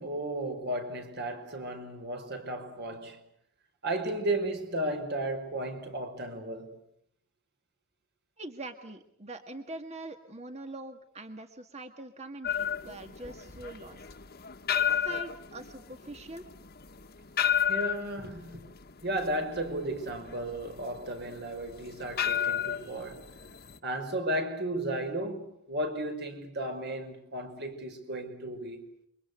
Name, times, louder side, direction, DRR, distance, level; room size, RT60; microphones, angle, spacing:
voice 1, 0.0-3.2 3.8-6.7 17.7-18.7 19.0-23.2 23.8-28.8, right 1 dB, 55° right, 5.5 m, -34 dB
voice 2, 8.4-14.0 14.7-16.5, right 2 dB, 35° right, 1.9 m, -43 dB
sound 1, 12.4-23.8, left 9 dB, 50° left, 1.5 m, -32 dB
28.5 x 24.5 x 8.2 m
head